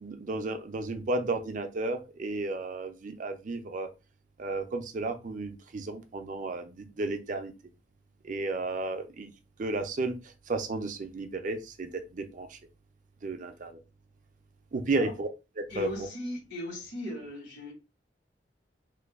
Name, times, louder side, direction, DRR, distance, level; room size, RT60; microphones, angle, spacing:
voice 1, 0.0-3.9 4.4-7.5 8.3-9.3 9.6-10.2 10.5-12.5 13.2-13.7 14.7-15.3 15.6-15.9, right 2 dB, 45° right, 0.5 m, -33 dB
voice 2, 15.7-17.7, left 2 dB, 75° left, 1.8 m, -37 dB
3.1 x 2.2 x 3.5 m
head